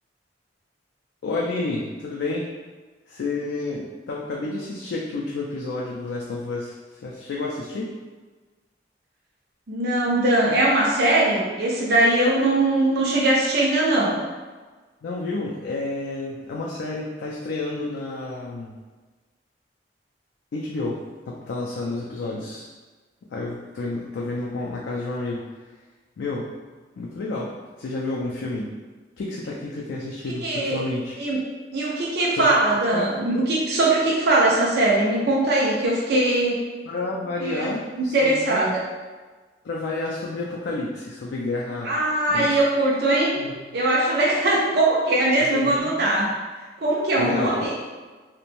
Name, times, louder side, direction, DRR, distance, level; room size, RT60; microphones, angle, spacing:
voice 1, 1.2-2.5 3.1-7.9 15.0-18.8 20.5-22.7 23.3-25.4 26.2-26.5 27.0-27.5 27.8-28.7 29.2-31.1 32.3-32.5 32.9-33.1 36.9-38.7 39.6-42.0 42.3-42.5 43.4-43.6 45.4-46.0 47.2-47.7, left 2 dB, 80° left, -3 dB, 0.3 m, -30 dB
voice 2, 9.7-14.2 30.4-30.8 31.2-31.4 31.7-36.6 37.4-38.8 41.8-43.3 43.7-46.4 46.8-47.7, right 2 dB, 65° right, -4 dB, 0.4 m, -21 dB
2.9 x 2.0 x 2.5 m, 1.3 s
head